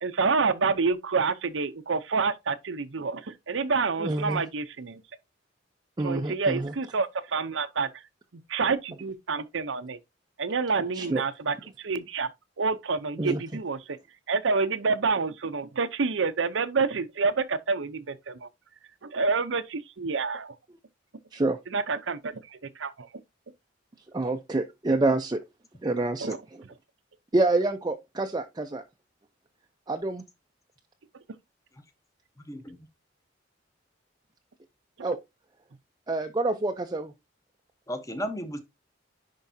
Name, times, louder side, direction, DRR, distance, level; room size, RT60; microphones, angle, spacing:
voice 1, 0.0-5.0 6.0-7.9 8.5-10.0 10.4-12.3 12.6-14.0 14.3-18.5 19.0-20.6 21.7-23.1 26.2-26.4 35.0-35.1, right 4 dB, 75° right, 0.7 m, -28 dB
voice 2, 4.0-4.4 6.0-6.7 10.9-11.2 13.2-13.4 21.3-21.6 24.1-25.4 25.8-26.6 27.3-28.8 29.9-30.2 35.0-35.2 36.1-37.1, right 2 dB, 20° right, 0.5 m, -27 dB
voice 3, 32.4-32.9 37.9-38.6, equal, 15° left, 1.0 m, -35 dB
10.5 x 4.6 x 2.7 m
head